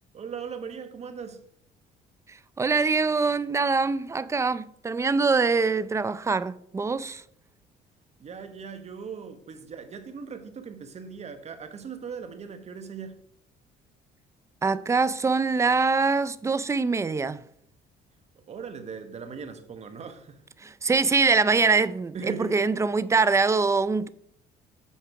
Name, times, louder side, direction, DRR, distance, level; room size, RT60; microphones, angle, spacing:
voice 1, 0.1-1.4 8.2-13.2 18.3-20.4 22.1-22.6, right 6 dB, 40° right, 1.2 m, -39 dB
voice 2, 2.6-7.2 14.6-17.4 20.6-24.1, right 4 dB, 15° right, 0.4 m, -24 dB
8.3 x 5.6 x 4.8 m
cardioid pair, 110°, 17 cm